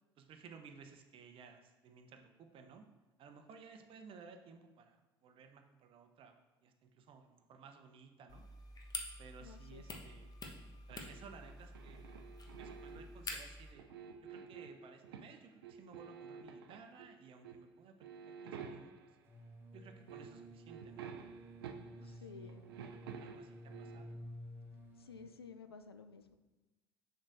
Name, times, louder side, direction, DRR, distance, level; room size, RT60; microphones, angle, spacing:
voice 1, 0.2-2.8 3.2-8.4 9.2-10.4 10.9-12.0 12.5-13.8 14.2-19.1 19.7-21.1 22.0-22.5 23.2-24.2, right 5 dB, 45° right, 6 dB, 0.8 m, -57 dB
sound 1, 8.3-13.7, left 2 dB, 30° left, 1.1 m, -48 dB
voice 2, 9.4-9.8 22.0-22.7 25.0-26.3, left 5 dB, 85° left, 9 dB, 0.4 m, -53 dB
sound 2, 10.9-13.2 13.7-15.4 15.6-17.1 17.4-17.7 18.0-19.2 19.7-19.8 20.1-22.2 22.5-24.1, right 6 dB, 70° right, 0.5 m, -51 dB
sound 3, 19.3-25.2, equal, 20° right, 1.5 m, -53 dB
7.1 x 6.5 x 2.6 m, 1.1 s
figure-of-eight pair, 65°, 13 cm